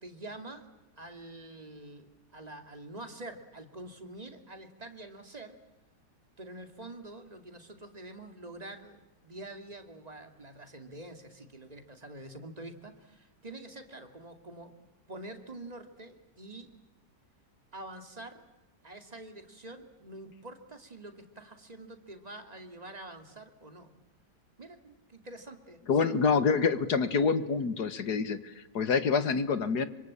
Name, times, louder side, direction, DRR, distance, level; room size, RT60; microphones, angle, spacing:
voice 1, 0.0-0.7 1.0-5.6 6.4-14.8 15.1-16.7 17.7-18.4 18.8-23.9 24.6-26.2, right 2 dB, 20° right, 6 dB, 2.5 m, -46 dB
voice 2, 25.9-29.9, left 5 dB, 65° left, 12 dB, 2.0 m, -27 dB
25.5 x 25.5 x 8.8 m, 1.1 s
omnidirectional pair, 1.9 m